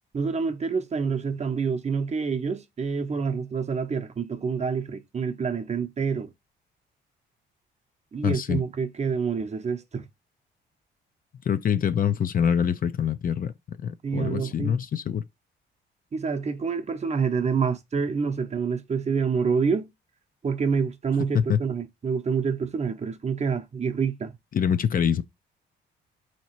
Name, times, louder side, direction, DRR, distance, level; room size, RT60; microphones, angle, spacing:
voice 1, 0.1-6.3 8.1-10.1 14.0-14.8 16.1-19.9 20.4-24.3, right 5 dB, 35° right, 0.8 m, -27 dB
voice 2, 8.2-8.6 11.5-13.5 13.8-15.2 21.3-21.6 24.5-25.2, left 8 dB, 45° left, 0.5 m, -25 dB
3.9 x 3.0 x 4.5 m
cardioid pair, 90°, 20 cm